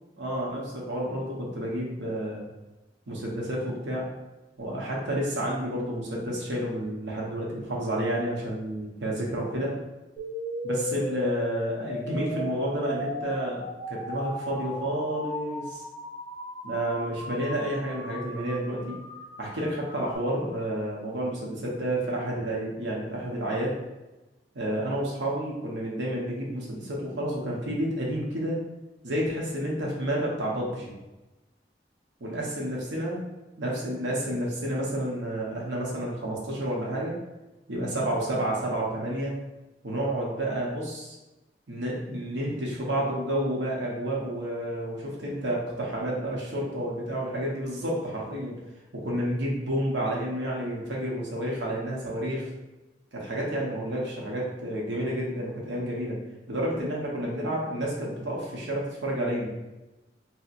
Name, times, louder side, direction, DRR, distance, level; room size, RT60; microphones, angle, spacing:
voice 1, 0.2-2.4 3.1-4.1 4.6-9.8 10.6-15.8 16.6-19.0 19.4-23.8 24.5-28.6 29.0-30.9 32.2-33.2 33.6-37.2 37.7-39.4 39.8-41.1 41.7-48.6 48.9-52.5 53.1-56.2 56.5-59.5, right 1 dB, 85° right, -3 dB, 0.8 m, -30 dB
sound 1, 10.2-20.2, left 1 dB, 20° left, 0.7 m, -36 dB
4.1 x 2.1 x 2.5 m, 1.1 s
head